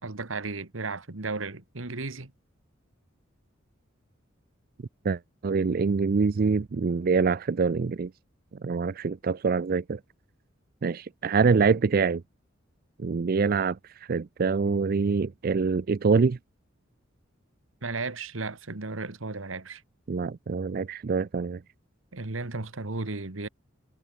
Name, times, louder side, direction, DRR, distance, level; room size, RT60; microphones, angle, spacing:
voice 1, 0.0-2.3 17.8-19.8 22.1-23.5, right 3 dB, 90° right, 1.7 m, -34 dB
voice 2, 5.0-8.1 8.6-10.0 10.8-12.2 13.0-13.8 14.1-16.4 20.1-21.6, right 5 dB, 45° right, 0.4 m, -25 dB
head